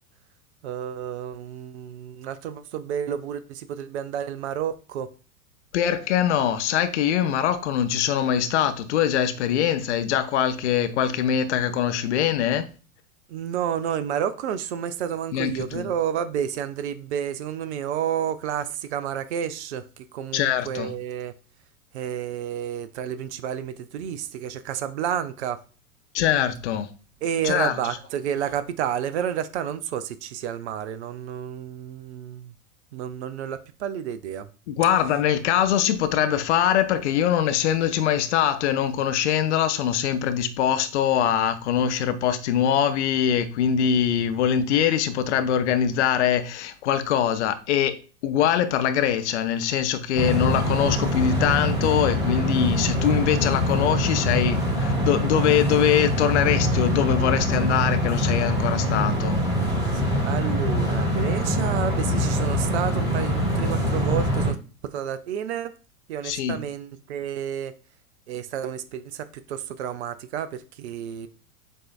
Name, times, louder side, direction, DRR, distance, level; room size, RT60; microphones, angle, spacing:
voice 1, 0.6-5.1 13.3-21.3 21.9-25.6 27.2-32.5 32.9-34.5 59.8-64.6 64.9-65.7 66.1-67.7 68.3-71.3, right 9 dB, 50° right, 0.5 m, -30 dB
voice 2, 5.7-12.7 15.3-15.9 20.3-20.9 26.1-26.9 27.4-27.7 34.7-48.0 48.2-59.4 66.2-66.6, left 9 dB, 50° left, 0.7 m, -23 dB
sound 1, 50.1-64.5, equal, 10° right, 2.4 m, -24 dB
7.5 x 2.7 x 2.4 m
figure-of-eight pair, 95°, 44 cm